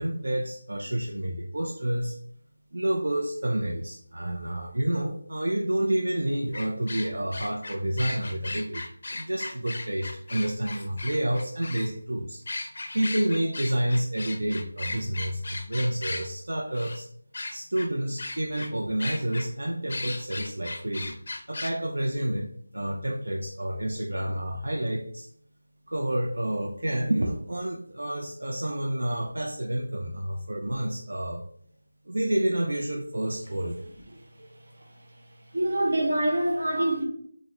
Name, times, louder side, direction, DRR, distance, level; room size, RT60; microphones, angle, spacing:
voice 1, 0.0-2.2 2.7-12.4 12.9-17.1 17.5-21.2 21.5-25.3 25.9-31.4 32.1-33.8, right 1 dB, 85° right, 0.4 m, -29 dB
sound 1, 6.5-11.9 12.5-16.3 16.7-17.0 17.3-17.9 18.2-18.7 19.0-19.5 19.9-21.7, left 2 dB, 45° left, 0.4 m, -36 dB
voice 2, 35.5-37.1, right 1 dB, 60° right, 0.9 m, -25 dB
3.5 x 2.0 x 2.9 m
figure-of-eight pair, 175°, 0 cm